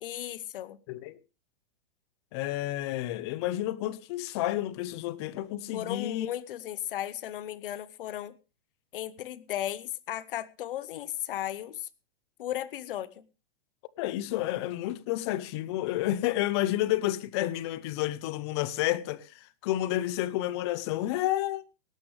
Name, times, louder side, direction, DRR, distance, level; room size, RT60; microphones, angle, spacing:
voice 1, 0.0-0.8 5.7-8.3 8.9-11.9 12.4-13.2, left 12 dB, 60° left, 1.0 m, -35 dB
voice 2, 0.9-1.2 2.3-6.3 14.0-21.6, left 14 dB, 25° left, 0.6 m, -30 dB
17.5 x 12.5 x 3.2 m
supercardioid pair, 165°, 30 cm